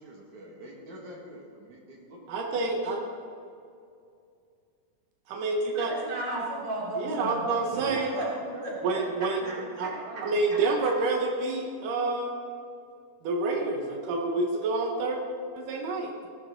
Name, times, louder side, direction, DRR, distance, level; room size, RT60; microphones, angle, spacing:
voice 1, 0.0-3.1 8.2-8.8 9.1-10.3, right 1 dB, 70° right, -2 dB, 3.3 m, -45 dB
voice 2, 2.3-3.0 5.3-5.9 7.0-8.2 8.8-9.9 10.2-12.3 13.2-15.2 15.5-16.1, right 3 dB, 85° right, 2 dB, 2.8 m, -28 dB
voice 3, 5.9-8.4 8.6-8.7 9.4-9.9 10.5-10.6, right 1 dB, 35° right, -5 dB, 3.5 m, -35 dB
17.0 x 11.5 x 3.8 m, 2.4 s
omnidirectional pair, 3.6 m